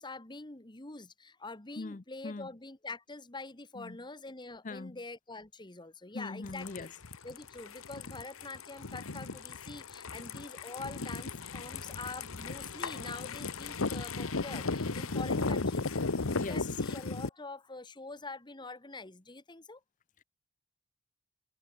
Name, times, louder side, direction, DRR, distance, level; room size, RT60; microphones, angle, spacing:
voice 1, 0.0-6.9 7.2-15.9 16.3-19.8, left 3 dB, 20° left, 1.5 m, -45 dB
voice 2, 1.8-2.5 3.8-4.0 4.6-5.0 6.1-6.9 15.4-15.7 16.4-16.7, left 3 dB, 40° left, 0.6 m, -41 dB
sound 1, 6.4-17.3, left 3 dB, 85° left, 1.2 m, -36 dB
sound 2, 11.1-16.6, left 2 dB, 60° left, 1.2 m, -54 dB
head